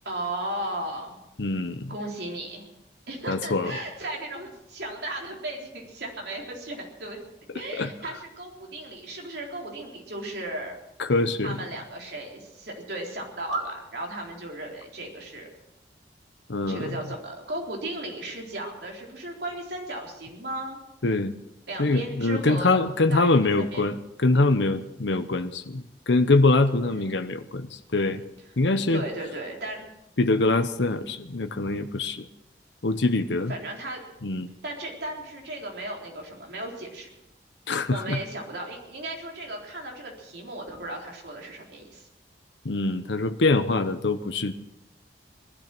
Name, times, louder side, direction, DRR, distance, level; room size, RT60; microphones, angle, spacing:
voice 1, 0.0-1.2 1.9-2.6 3.1-7.2 7.5-10.7 11.4-15.5 16.7-20.8 21.7-22.8 23.1-23.8 26.9-27.3 28.9-29.9 33.5-34.0 34.6-37.1 37.9-42.1, right 1 dB, 65° right, 0 dB, 3.8 m, -35 dB
voice 2, 1.4-1.9 3.3-3.7 7.8-7.9 11.0-11.6 16.5-16.8 21.0-21.3 21.8-28.2 28.6-29.0 30.2-32.2 32.8-33.5 34.2-34.5 37.7-38.2 42.6-44.5, left 2 dB, 80° left, 9 dB, 0.9 m, -24 dB
19.0 x 12.0 x 6.1 m, 0.86 s
head